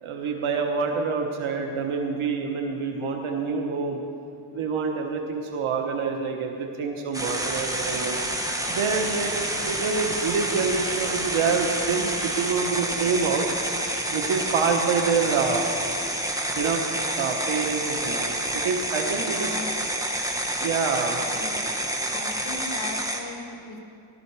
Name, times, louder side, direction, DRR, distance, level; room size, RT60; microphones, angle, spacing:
voice 1, 0.0-4.0 4.5-8.2 8.7-9.3 9.6-13.5 14.1-15.6 16.5-16.8 17.2-19.6 20.6-21.2, right 5 dB, 80° right, 2 dB, 1.3 m, -26 dB
sound 1, 7.1-23.2, right 1 dB, 5° right, 1.2 m, -28 dB
voice 2, 19.3-19.7 21.1-21.7 22.1-23.8, left 3 dB, 55° left, 1 dB, 1.9 m, -37 dB
16.5 x 12.5 x 4.8 m, 2.6 s
wide cardioid pair, 130°, 48 cm